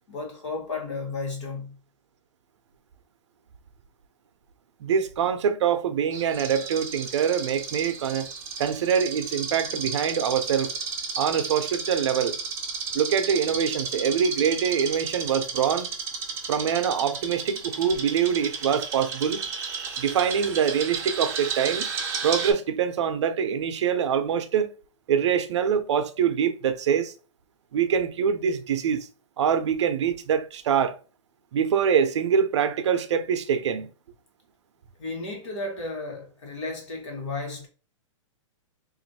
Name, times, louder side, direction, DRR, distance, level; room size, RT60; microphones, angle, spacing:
voice 1, 0.1-1.8 35.0-37.7, left 3 dB, 65° left, 1.9 m, -33 dB
voice 2, 4.8-8.3 8.6-10.7 11.2-12.4 12.9-15.9 16.5-19.4 20.0-21.9 22.2-24.7 25.1-27.1 27.7-29.1 29.4-31.0 31.5-33.9, right 7 dB, 60° right, 0.6 m, -24 dB
sound 1, 6.1-22.5, right 5 dB, 15° right, 0.7 m, -33 dB
3.0 x 2.6 x 4.1 m
hypercardioid pair, 165°, 17 cm